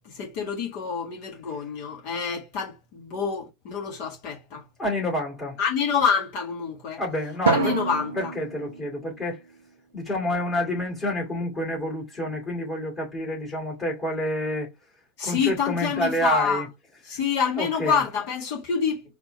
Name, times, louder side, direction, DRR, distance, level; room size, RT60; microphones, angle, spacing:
voice 1, 0.1-4.6 5.6-7.0 7.5-8.3 15.2-16.6 17.1-19.0, left 6 dB, 45° left, 1.8 m, -27 dB
voice 2, 4.8-5.6 7.0-7.8 8.1-9.4 9.9-14.7 15.2-16.7 17.6-18.0, left 1 dB, 25° left, 2.4 m, -28 dB
Drum, 7.5-9.7, right 6 dB, 65° right, 0.6 m, -28 dB
4.3 x 3.4 x 3.3 m
figure-of-eight pair, 90°, 0 cm